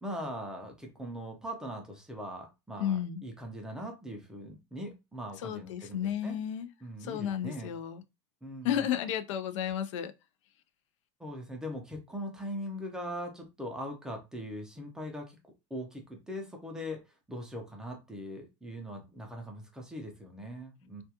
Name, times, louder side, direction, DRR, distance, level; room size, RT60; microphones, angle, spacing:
voice 1, 0.0-6.4 6.8-7.7 8.4-8.8 11.2-17.0 17.3-21.0, equal, 5° right, 0.4 m, -41 dB
voice 2, 2.8-3.2 5.4-6.7 7.0-8.0 8.6-10.1, left 10 dB, 85° left, 0.5 m, -32 dB
2.3 x 2.2 x 2.8 m
supercardioid pair, 165°, 15 cm